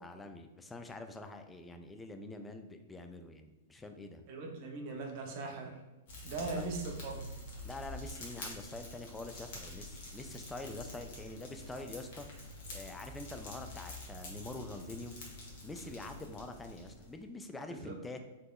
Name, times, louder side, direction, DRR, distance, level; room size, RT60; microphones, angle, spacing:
voice 1, 0.0-4.2 6.4-6.7 7.6-12.3 12.7-15.1 15.6-18.2, left 2 dB, 10° left, 6 dB, 0.3 m, -45 dB
voice 2, 4.3-5.8 6.2-7.3 17.7-17.9, right 3 dB, 45° right, 1 dB, 0.6 m, -40 dB
Fire, 6.1-17.2, left 1 dB, 50° left, 1.0 m, -47 dB
3.5 x 2.9 x 2.3 m, 1.1 s
figure-of-eight pair, 100°, 0 cm